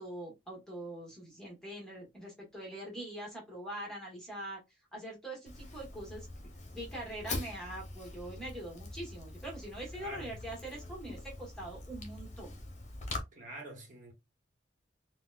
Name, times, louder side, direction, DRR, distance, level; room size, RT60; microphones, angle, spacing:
voice 1, 0.0-4.6 4.9-6.3 6.7-12.6, right 1 dB, 5° left, 1.2 m, -43 dB
Fire, 5.5-13.2, left 2 dB, 40° left, 0.8 m, -43 dB
voice 2, 9.9-10.4 13.3-14.1, right 1 dB, 45° right, 1.1 m, -46 dB
3.9 x 2.1 x 2.3 m
head